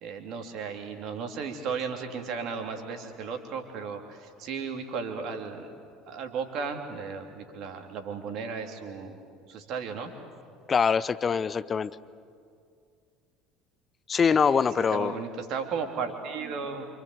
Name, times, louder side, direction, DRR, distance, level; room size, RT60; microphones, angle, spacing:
voice 1, 0.0-5.7 6.1-9.2 9.5-10.1 14.2-14.6 14.9-16.9, right 5 dB, 50° right, 4 dB, 3.1 m, -35 dB
voice 2, 10.7-12.0 14.1-15.2, left 6 dB, 30° left, 16 dB, 0.8 m, -24 dB
28.0 x 26.0 x 8.1 m, 2.3 s
figure-of-eight pair, 65°, 0 cm